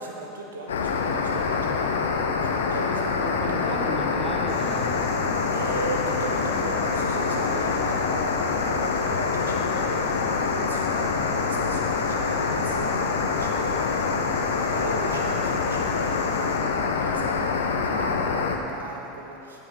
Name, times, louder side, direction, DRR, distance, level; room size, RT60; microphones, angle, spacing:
voice 1, 0.0-1.9 2.4-3.7 5.5-19.6, right 2 dB, 85° right, 0 dB, 1.1 m, -37 dB
sound 1, 0.7-18.6, left 4 dB, 80° left, 0.7 m, -25 dB
voice 2, 3.2-5.5 17.9-19.1, equal, 5° right, -1 dB, 1.4 m, -36 dB
sound 2, 4.5-16.6, left 4 dB, 55° left, 2.2 m, -46 dB
12.0 x 5.0 x 5.8 m, 2.9 s
hypercardioid pair, 90°, 0 cm